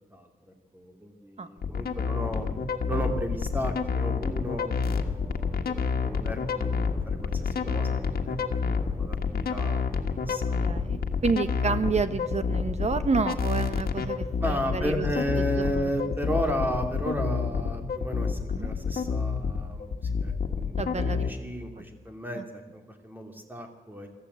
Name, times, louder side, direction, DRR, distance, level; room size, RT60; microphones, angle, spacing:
voice 1, 0.7-2.5 2.9-9.8 10.3-10.6 14.4-24.1, equal, 10° right, 3 dB, 2.8 m, -34 dB
sound 1, 1.6-21.3, left 5 dB, 85° left, 1.6 m, -28 dB
voice 2, 10.2-15.0 15.4-15.9 16.3-16.5 18.5-18.7 20.8-21.2 21.8-21.9 22.3-22.4, right 4 dB, 45° right, 11 dB, 1.2 m, -30 dB
24.5 x 14.0 x 8.3 m, 1.3 s
wide cardioid pair, 130°, 15 cm